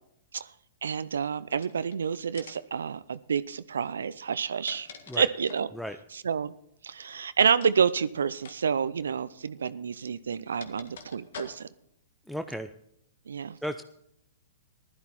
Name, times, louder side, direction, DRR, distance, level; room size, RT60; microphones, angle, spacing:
voice 1, 0.8-4.9 5.2-5.7 6.1-6.5 6.8-11.7 13.3-13.6, right 6 dB, 75° right, 15 dB, 0.5 m, -28 dB
sound 1, 1.6-2.0 2.3-2.8 4.2-5.7 7.5-7.8 8.3-8.6 8.9-9.0 9.9-11.9, left 6 dB, 65° left, 1.8 m, -47 dB
voice 2, 12.3-12.7 13.6-13.8, equal, ahead, 8 dB, 0.6 m, -34 dB
15.5 x 12.0 x 4.2 m, 0.74 s
hypercardioid pair, 115°, 0 cm